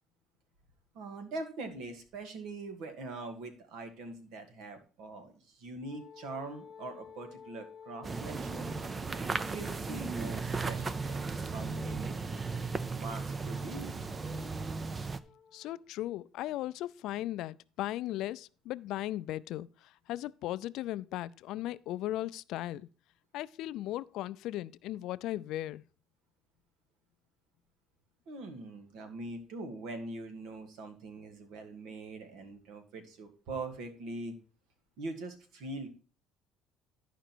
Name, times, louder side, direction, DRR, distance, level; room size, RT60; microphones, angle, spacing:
voice 1, 0.9-8.7 9.3-12.2 12.9-14.1 28.3-34.3 35.0-35.9, right 2 dB, 75° right, 1.8 m, -43 dB
Wind instrument woodwind instrument, 5.8-15.8, left 7 dB, 40° left, 0.8 m, -53 dB
sound 1, 8.0-15.2, right 4 dB, 25° right, 0.5 m, -36 dB
voice 2, 15.5-22.9 23.3-25.8, left 14 dB, 70° left, 0.3 m, -37 dB
11.5 x 5.1 x 4.4 m
cardioid pair, 135°, 0 cm